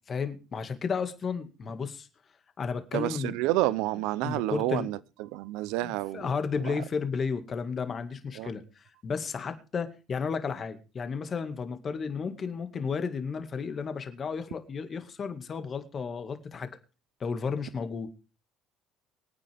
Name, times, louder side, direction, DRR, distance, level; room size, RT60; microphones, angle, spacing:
voice 1, 0.1-2.1 2.6-3.4 4.2-4.9 5.8-16.7 17.2-18.1, left 5 dB, 30° left, 2.1 m, -33 dB
voice 2, 2.9-6.3 6.7-6.8 8.4-8.5, right 17 dB, 80° right, 0.8 m, -29 dB
24.0 x 9.3 x 3.6 m
cardioid pair, 130°, 0 cm